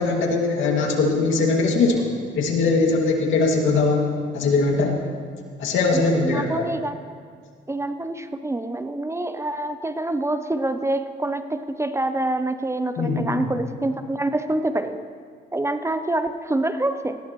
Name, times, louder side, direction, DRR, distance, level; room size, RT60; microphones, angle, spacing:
voice 1, 0.0-5.0 5.6-6.6 13.0-13.4, left 3 dB, 80° left, 1 dB, 2.2 m, -21 dB
voice 2, 5.9-7.0 7.7-15.1 15.5-17.2, right 2 dB, 15° right, 10 dB, 0.6 m, -26 dB
18.5 x 16.5 x 3.1 m, 2.1 s
cardioid pair, 90°, 20 cm